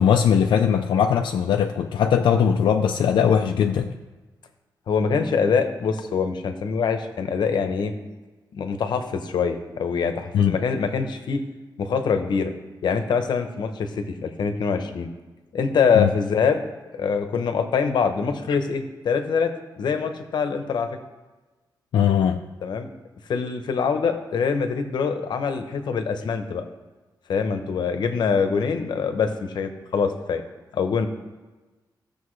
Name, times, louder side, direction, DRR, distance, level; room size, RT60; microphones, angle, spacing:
voice 1, 0.0-4.0 10.3-10.6 16.0-16.1 21.9-22.4, left 8 dB, 90° left, 4 dB, 0.5 m, -20 dB
voice 2, 4.9-7.9 8.5-11.4 11.8-12.5 12.8-15.1 15.5-20.9 22.6-22.9 23.3-26.6 27.3-30.4 30.7-31.1, left 5 dB, 70° left, 8 dB, 0.9 m, -24 dB
16.0 x 6.8 x 3.2 m, 1.2 s
wide cardioid pair, 155°, 8 cm